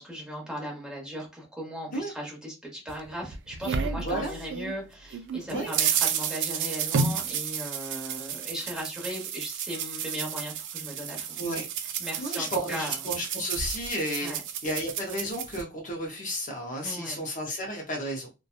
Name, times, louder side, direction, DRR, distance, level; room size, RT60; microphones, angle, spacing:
voice 1, 0.0-11.4 11.8-13.0 14.2-14.4 16.8-17.2, equal, 5° right, -2 dB, 1.0 m, -38 dB
sound 1, 2.9-4.7 5.1-15.6, right 6 dB, 60° right, 0.4 m, -31 dB
voice 2, 4.0-4.3 5.5-5.7 11.4-11.7 12.2-14.4 14.6-18.3, equal, 40° left, 0 dB, 0.5 m, -32 dB
2.8 x 2.2 x 2.3 m, 0.28 s
head